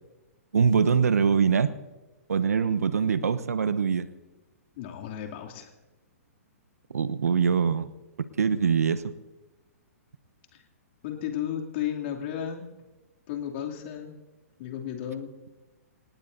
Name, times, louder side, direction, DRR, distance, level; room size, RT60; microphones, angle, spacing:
voice 1, 0.5-1.7 2.3-4.1 6.9-7.9 8.4-9.0, right 6 dB, 80° right, 14 dB, 0.9 m, -23 dB
voice 2, 4.8-5.7 10.5-10.6 11.0-12.7 13.3-14.2 14.6-15.3, left 10 dB, 45° left, 1 dB, 2.7 m, -34 dB
28.0 x 18.0 x 2.7 m, 1.1 s
hypercardioid pair, 120°, 8 cm